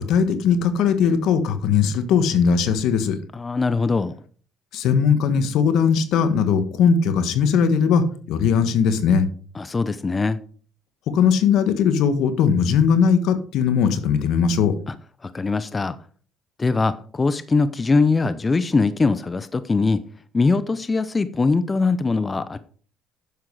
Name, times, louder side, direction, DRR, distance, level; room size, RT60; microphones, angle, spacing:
voice 1, 0.0-3.2 4.7-9.3 11.1-14.7, left 6 dB, 75° left, 10 dB, 1.5 m, -19 dB
voice 2, 3.3-4.1 9.5-10.4 14.9-15.0 15.2-16.0 16.6-20.0 20.3-22.6, left 4 dB, 25° left, 13 dB, 0.7 m, -21 dB
10.0 x 7.3 x 4.8 m, 0.43 s
supercardioid pair, 80°, 0 cm